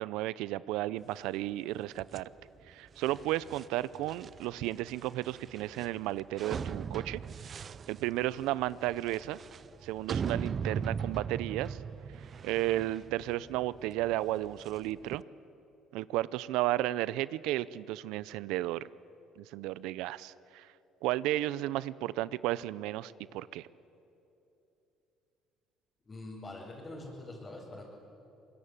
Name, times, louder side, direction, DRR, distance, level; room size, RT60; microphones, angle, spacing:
voice 1, 0.0-2.3 2.7-7.2 7.5-7.6 7.9-9.4 9.8-11.8 12.4-15.2 15.9-18.9 19.4-20.7 21.0-23.7, right 15 dB, 85° right, 18 dB, 0.6 m, -33 dB
sound 1, 2.0-15.2, right 6 dB, 40° right, 0.5 m, -40 dB
voice 2, 26.1-27.8, left 2 dB, 25° left, -5 dB, 5.3 m, -44 dB
24.5 x 21.5 x 8.6 m, 2.9 s
cardioid pair, 105°, 0 cm